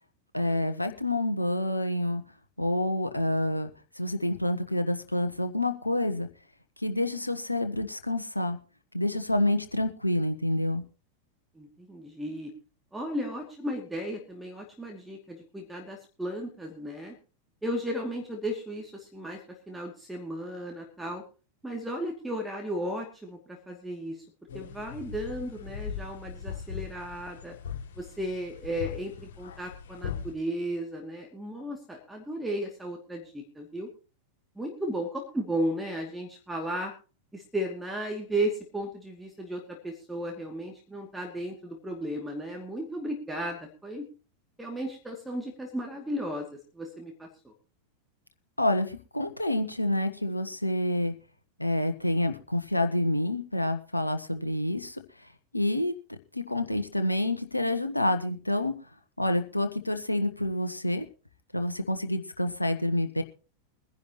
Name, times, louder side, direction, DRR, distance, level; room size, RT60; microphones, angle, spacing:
voice 1, 0.3-2.2 2.6-3.7 3.9-6.3 6.8-8.6 8.9-10.8 48.6-51.1 51.6-55.0 55.5-58.7 59.2-61.1 61.5-63.2, left 1 dB, 85° left, 8 dB, 1.2 m, -28 dB
voice 2, 11.5-12.5 12.9-17.2 17.6-21.2 21.6-24.3 24.5-27.6 28.0-33.9 34.6-36.9 37.3-44.1 44.6-46.5 46.7-47.5, right 1 dB, 5° right, 1 dB, 2.5 m, -35 dB
sound 1, 24.5-30.3, left 7 dB, 60° left, 4.9 m, -40 dB
22.5 x 10.5 x 3.0 m, 0.34 s
figure-of-eight pair, 90°, 0 cm